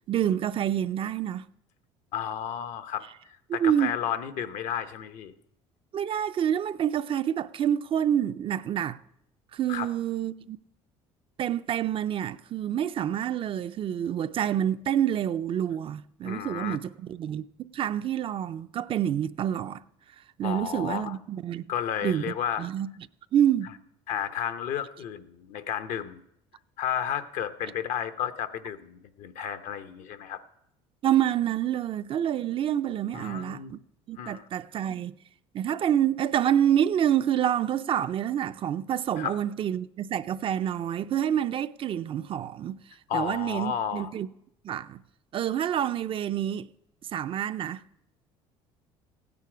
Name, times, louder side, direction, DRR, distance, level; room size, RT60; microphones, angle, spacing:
voice 1, 0.1-1.5 3.5-4.0 5.9-9.0 9.5-10.6 11.4-19.8 20.4-21.7 22.0-22.9 23.3-23.7 31.0-33.8 34.1-35.1 35.5-42.8 43.1-44.3 44.6-45.0 45.3-46.7 47.1-47.8, right 10 dB, 45° right, 0.4 m, -27 dB
voice 2, 2.1-3.0 3.5-5.3 9.7-9.9 16.2-16.8 20.4-21.1 21.7-22.7 24.1-26.2 26.8-30.4 33.1-33.7 34.2-34.5 39.2-39.4 43.1-44.1, left 9 dB, 70° left, 0.8 m, -32 dB
15.5 x 9.5 x 4.9 m
supercardioid pair, 90°, 13 cm